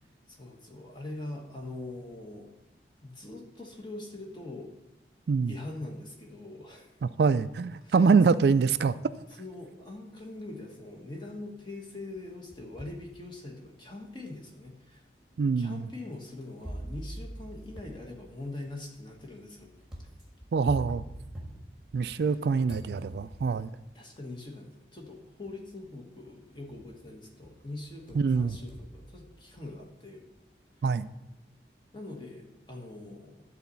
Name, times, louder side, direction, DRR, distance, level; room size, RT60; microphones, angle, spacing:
voice 1, 0.3-2.5 3.0-4.7 5.4-7.0 7.8-8.4 9.4-15.1 15.6-19.7 20.0-20.1 22.1-22.4 23.9-30.2 31.9-33.4, left 2 dB, 25° left, 1 dB, 1.4 m, -43 dB
voice 2, 7.0-9.0 15.4-15.9 20.5-21.0 21.9-23.7 28.2-28.6 30.8-31.1, right 5 dB, 70° right, 14 dB, 0.3 m, -24 dB
sound 1, 12.2-13.1 13.6-13.7 14.6-14.7 16.6-22.3 22.7-23.7 24.8-24.9 25.5-25.9 26.3-27.0 27.4-29.8, right 1 dB, 5° right, 1.5 m, -44 dB
11.5 x 4.1 x 7.0 m, 0.93 s
head